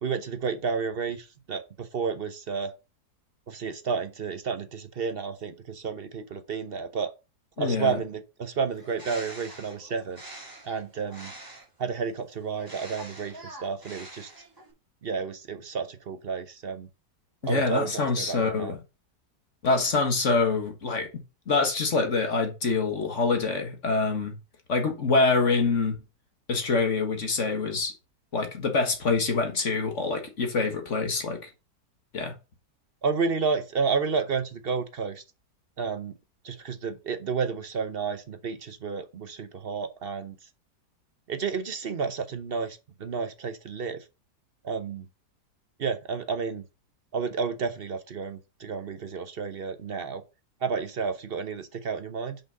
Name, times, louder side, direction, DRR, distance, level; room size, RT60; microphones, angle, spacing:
voice 1, 0.0-2.7 3.5-7.1 7.6-10.2 10.7-11.3 11.8-14.3 15.0-16.9 17.4-18.7 33.0-35.2 35.8-36.2 36.4-40.3 41.3-44.0 44.6-45.0 45.8-46.6 47.1-50.2 50.6-52.4, right 5 dB, 45° right, 0.8 m, -31 dB
voice 2, 7.6-8.0 17.4-18.8 19.6-21.1 21.5-24.4 24.7-26.0 26.5-27.9 28.3-31.5 32.1-32.3, left 3 dB, 45° left, 1.8 m, -25 dB
Bird, 8.7-11.8 12.5-14.7, right 1 dB, 10° right, 2.7 m, -45 dB
5.8 x 5.5 x 5.2 m
omnidirectional pair, 1.8 m